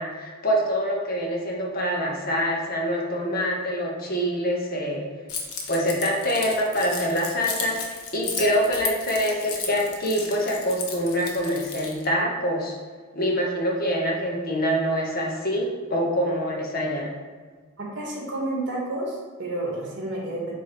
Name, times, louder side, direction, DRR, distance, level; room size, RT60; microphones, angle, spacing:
voice 1, 0.0-5.1 5.7-12.8 13.1-17.1, equal, 40° left, -1 dB, 1.2 m, -25 dB
Keys jangling, 5.3-12.1, left 5 dB, 85° left, 1.0 m, -34 dB
voice 2, 17.8-20.5, right 1 dB, 55° right, -3 dB, 1.8 m, -30 dB
7.6 x 2.9 x 4.5 m, 1.5 s
head